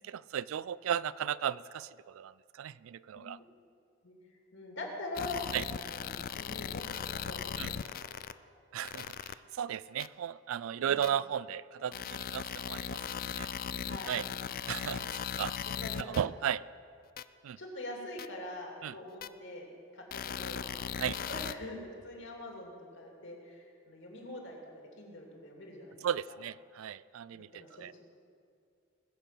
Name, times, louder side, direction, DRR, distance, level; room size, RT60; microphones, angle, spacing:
voice 1, 0.1-2.3 2.6-3.4 5.5-5.6 7.6-7.7 8.7-9.1 9.6-13.0 13.4-13.5 14.1-14.3 14.7-15.1 15.4-15.5 16.2-16.6 17.4-17.6 18.8-18.9 21.0-21.2 26.0-28.0, right 9 dB, 75° right, 19 dB, 0.3 m, -35 dB
voice 2, 4.5-5.5 5.7-6.1 6.3-7.6 7.9-8.0 10.8-11.0 13.8-14.2 15.6-16.3 17.6-19.7 19.9-20.6 21.0-26.0 26.3-26.4 27.3-28.0, left 2 dB, 60° left, 0 dB, 2.7 m, -44 dB
sound 1, 5.2-8.3 8.8-9.3 10.0-10.1 11.0-11.1 11.9-16.2 17.2-17.3 18.2-18.3 19.2-19.3 20.1-21.5, left 8 dB, 45° left, 0.3 m, -38 dB
20.5 x 6.8 x 7.5 m, 2.4 s
head